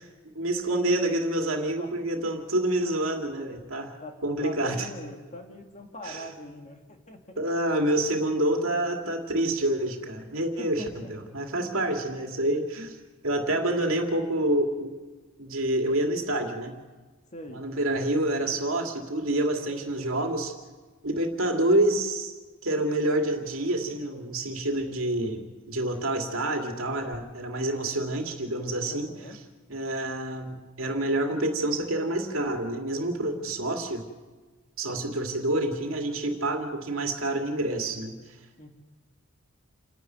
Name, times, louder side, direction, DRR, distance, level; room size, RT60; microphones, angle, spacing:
voice 1, 0.3-4.0 4.2-4.9 6.0-6.2 7.4-10.8 11.1-13.0 13.2-14.9 15.4-16.8 17.5-20.5 21.0-22.3 22.6-29.1 29.7-34.1 34.8-38.2, right 1 dB, 70° right, 3 dB, 2.5 m, -27 dB
voice 2, 4.4-7.4 10.6-11.1 17.3-17.6 28.9-29.4 38.6-38.7, left 1 dB, 35° left, 3 dB, 2.5 m, -42 dB
28.5 x 11.0 x 9.3 m, 1.3 s
head